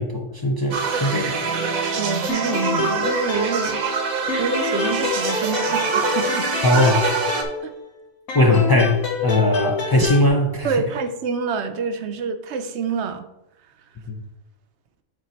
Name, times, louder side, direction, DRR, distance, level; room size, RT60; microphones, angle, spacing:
voice 1, 0.0-1.3 6.6-7.2 8.3-9.0 9.2-10.8 14.1-14.2, left 1 dB, 35° left, 0.3 m, -19 dB
sound 1, 0.7-7.4, right 4 dB, 85° right, 1.4 m, -25 dB
voice 2, 1.9-3.8 4.4-6.5 7.6-7.7 10.6-13.3, right 5 dB, 65° right, 0.9 m, -27 dB
sound 2, 2.3-4.0 4.3-7.9 8.3-10.3, left 3 dB, 85° left, 1.5 m, -27 dB
8.2 x 3.9 x 4.4 m
omnidirectional pair, 1.4 m